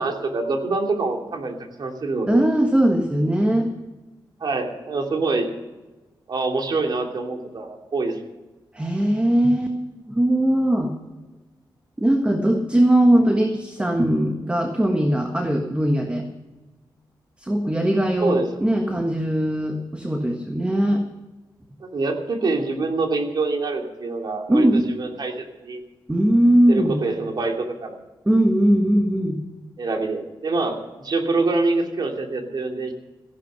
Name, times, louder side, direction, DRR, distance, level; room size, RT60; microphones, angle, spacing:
voice 1, 0.0-2.5 4.4-5.5 6.3-8.2 18.2-18.5 21.8-25.8 26.7-28.0 29.8-32.9, right 3 dB, 55° right, 3 dB, 2.8 m, -25 dB
voice 2, 2.3-3.7 8.7-9.7 10.1-10.9 12.0-16.2 17.4-21.0 24.5-24.9 26.1-27.0 28.2-29.4, right 1 dB, 15° right, 4 dB, 1.5 m, -20 dB
15.0 x 11.5 x 6.8 m, 1.1 s
wide cardioid pair, 110°, 8 cm